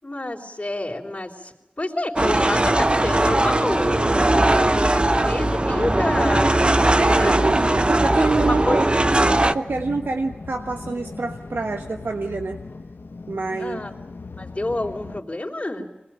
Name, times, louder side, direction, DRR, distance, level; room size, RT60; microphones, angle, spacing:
voice 1, 0.0-6.6 7.0-8.8 13.6-13.9 14.4-15.9, left 1 dB, 35° left, -2 dB, 3.8 m, -29 dB
sound 1, 2.2-9.5, right 1 dB, 30° right, 0.8 m, -19 dB
sound 2, 5.6-15.2, left 3 dB, 80° left, 0.9 m, -38 dB
voice 2, 6.9-8.9 9.4-12.6 13.3-13.8, right 3 dB, 90° right, 5 dB, 1.2 m, -26 dB
25.0 x 20.5 x 8.9 m, 1.0 s
wide cardioid pair, 70°, 4 cm